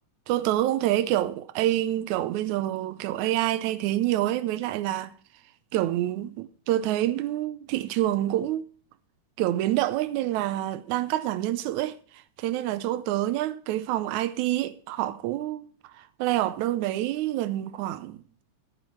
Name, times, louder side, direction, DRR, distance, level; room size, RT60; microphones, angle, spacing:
voice 1, 0.3-5.1 5.7-8.6 9.4-15.7 15.9-18.2, right 14 dB, 80° right, 2.0 m, -27 dB
10.5 x 10.0 x 4.4 m
omnidirectional pair, 3.5 m